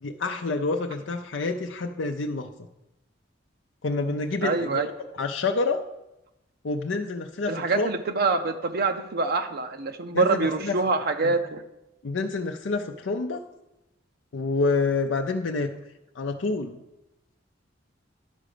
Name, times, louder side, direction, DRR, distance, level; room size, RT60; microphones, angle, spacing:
voice 1, 0.0-2.5 3.8-4.9 5.2-5.8 6.6-7.9 10.1-10.8 11.2-11.3 12.0-13.4 14.3-15.7 16.2-16.8, left 3 dB, 70° left, 4 dB, 0.6 m, -28 dB
voice 2, 4.4-4.9 7.5-11.6, right 4 dB, 55° right, 7 dB, 0.6 m, -25 dB
11.0 x 5.0 x 6.6 m, 0.93 s
head